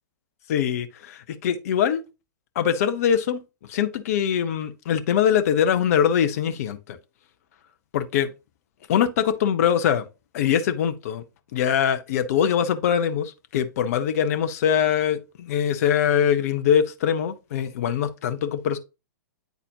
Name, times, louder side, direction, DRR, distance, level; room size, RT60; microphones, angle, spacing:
voice 1, 0.5-2.0 2.6-3.4 3.7-7.0 7.9-8.3 8.9-10.1 10.3-11.2 11.5-18.8, left 8 dB, 50° left, 0.7 m, -23 dB
9.2 x 4.1 x 2.7 m
figure-of-eight pair, 110°, 10 cm